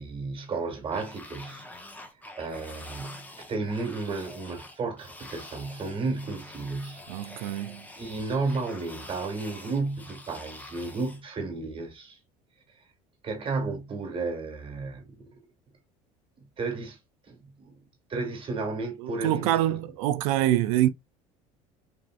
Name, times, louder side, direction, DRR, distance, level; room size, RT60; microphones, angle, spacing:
voice 1, 0.0-1.6 2.4-7.6 8.0-12.2 13.2-15.4 16.6-17.0 17.3-17.7 18.1-19.6, right 3 dB, 30° right, 1.4 m, -33 dB
sound 1, 0.9-11.2, left 2 dB, 10° left, 0.7 m, -46 dB
voice 2, 7.1-7.9 19.0-20.9, right 13 dB, 85° right, 0.4 m, -25 dB
3.4 x 2.5 x 2.3 m
supercardioid pair, 90°, 17 cm